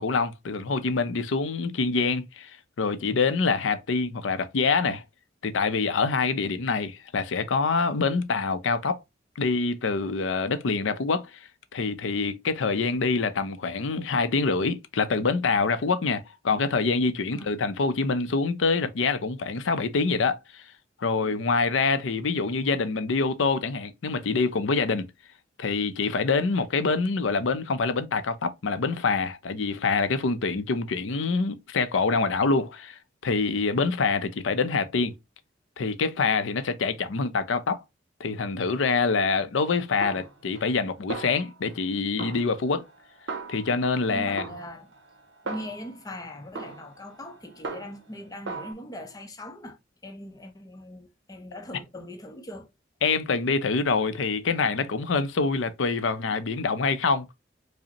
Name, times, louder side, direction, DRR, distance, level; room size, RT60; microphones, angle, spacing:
voice 1, 0.0-5.0 5.4-9.0 9.4-20.6 21.0-25.1 25.6-35.1 35.8-37.8 38.2-42.8 43.5-44.4 53.0-57.3, left 4 dB, 85° left, 0.5 m, -26 dB
Snare drum, 40.0-40.8 41.1-41.9 42.2-44.0 44.4-46.0 46.5-48.1 48.5-48.7, right 3 dB, 75° right, 0.6 m, -38 dB
voice 2, 44.1-44.9 45.4-49.8 50.0-52.7, left 1 dB, 20° left, 0.6 m, -40 dB
5.0 x 2.1 x 2.8 m
head